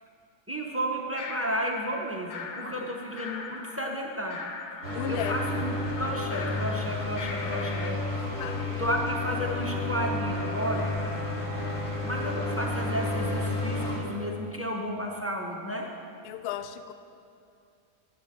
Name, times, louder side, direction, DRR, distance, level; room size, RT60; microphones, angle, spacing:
voice 1, 0.5-4.5 5.1-8.0 8.8-10.9 12.0-15.9, equal, 15° right, 0 dB, 0.5 m, -32 dB
sound 1, 1.2-7.9, left 5 dB, 70° left, 1.2 m, -41 dB
sound 2, 4.8-14.0, left 2 dB, 45° left, 2.3 m, -31 dB
voice 2, 4.9-5.4 8.4-8.7 16.2-16.9, left 10 dB, 90° left, 10 dB, 0.5 m, -35 dB
12.5 x 10.5 x 3.6 m, 2.4 s
omnidirectional pair, 1.6 m